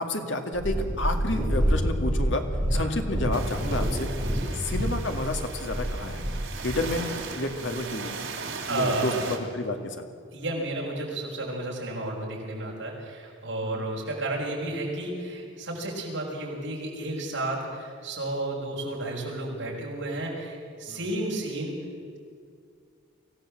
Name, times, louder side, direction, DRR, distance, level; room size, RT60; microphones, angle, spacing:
voice 1, 0.0-2.4 2.7-4.1 4.5-6.2 6.6-7.0 7.4-8.1 8.7-10.1 13.6-13.8 20.9-21.0, left 2 dB, 65° left, 5 dB, 2.2 m, -30 dB
Purr, 0.5-6.9 7.6-7.7, equal, 25° right, 5.0 m, -27 dB
sound 1, 3.3-9.4, right 4 dB, 80° right, 3.3 m, -38 dB
voice 2, 8.7-9.2 10.3-21.8, right 2 dB, 65° right, -2 dB, 6.2 m, -32 dB
24.5 x 16.5 x 7.7 m, 2.3 s
head